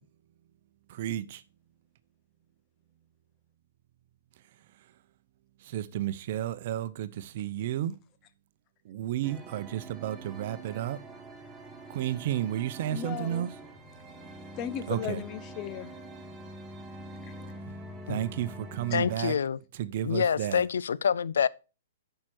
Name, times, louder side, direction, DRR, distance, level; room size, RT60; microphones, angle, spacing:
voice 1, 0.9-1.4 5.6-8.0 8.8-11.0 11.9-13.5 14.9-15.2 17.6-19.4 19.7-20.6, right 12 dB, 50° right, 0.7 m, -32 dB
sound 1, 9.2-19.1, right 1 dB, 10° right, 1.6 m, -45 dB
voice 2, 12.9-13.5 14.6-15.9 18.9-19.0, left 9 dB, 35° left, 0.9 m, -36 dB
voice 3, 18.9-19.6 20.0-21.5, left 7 dB, 75° left, 0.4 m, -26 dB
8.7 x 5.7 x 4.4 m
hypercardioid pair, 125°, 0 cm